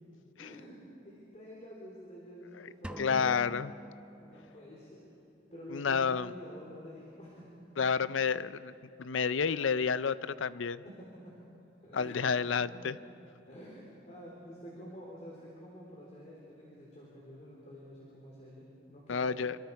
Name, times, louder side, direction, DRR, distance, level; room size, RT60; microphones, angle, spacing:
voice 1, 0.4-3.3 4.2-5.1 5.5-7.5 7.8-7.9 10.8-11.4 11.8-12.3 12.8-12.9 13.4-19.4, equal, 35° left, -4 dB, 3.7 m, -49 dB
sound 1, 2.8-4.9, equal, 5° right, 0.4 m, -46 dB
voice 2, 3.0-3.7 5.7-6.3 7.8-8.7 9.0-10.8 11.9-13.0 19.1-19.6, left 6 dB, 85° left, 16 dB, 0.6 m, -30 dB
27.0 x 25.0 x 4.8 m, 2.7 s
head